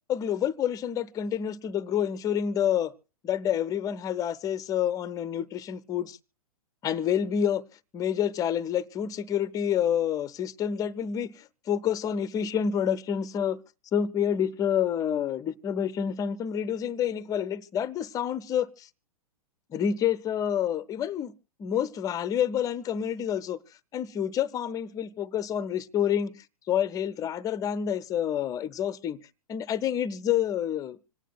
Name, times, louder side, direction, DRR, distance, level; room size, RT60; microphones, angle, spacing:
voice 1, 0.1-2.9 3.2-6.2 6.8-7.6 7.9-13.6 13.9-18.9 19.7-21.3 21.6-23.6 23.9-26.4 26.7-29.2 29.5-31.0, left 9 dB, 20° left, 0.5 m, -28 dB
26.0 x 9.0 x 2.3 m
figure-of-eight pair, 110°, 19 cm